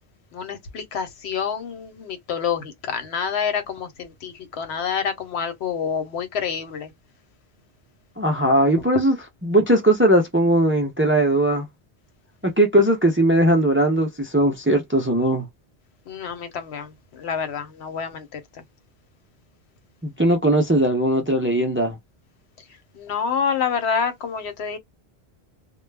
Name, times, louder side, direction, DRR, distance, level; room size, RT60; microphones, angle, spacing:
voice 1, 0.3-6.9 16.1-18.6 22.9-24.8, left 6 dB, 90° left, 1.0 m, -28 dB
voice 2, 8.2-9.1 9.4-11.7 12.4-15.5 20.0-22.0, right 1 dB, 15° right, 0.4 m, -19 dB
2.2 x 2.0 x 3.3 m
omnidirectional pair, 1.1 m